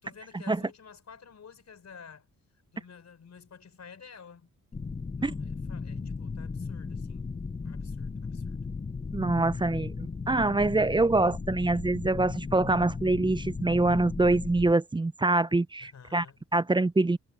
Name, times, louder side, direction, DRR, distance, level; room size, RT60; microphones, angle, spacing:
voice 1, 0.0-2.3 2.7-4.5 5.2-7.3 7.6-8.6 15.8-16.4, left 6 dB, 50° left, 4.8 m, -51 dB
sound 1, 4.7-14.7, left 4 dB, 20° left, 0.8 m, -36 dB
voice 2, 9.1-16.2 16.5-17.2, right 2 dB, 15° right, 0.6 m, -25 dB
cardioid pair, 90°, 33 cm